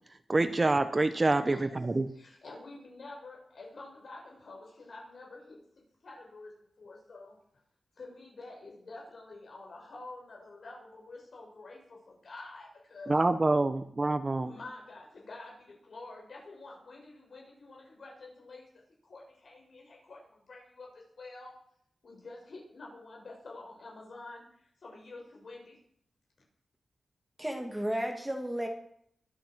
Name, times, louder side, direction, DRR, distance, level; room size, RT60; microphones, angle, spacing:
voice 1, 0.3-2.1 13.1-14.5, right 2 dB, 30° right, 10 dB, 1.0 m, -26 dB
voice 2, 1.4-7.4 8.0-13.4 14.4-21.6 22.0-25.8, left 2 dB, 60° left, -1 dB, 7.1 m, -48 dB
voice 3, 27.4-28.7, equal, 10° right, 3 dB, 2.5 m, -33 dB
23.0 x 9.0 x 6.3 m, 0.67 s
wide cardioid pair, 110°, 0 cm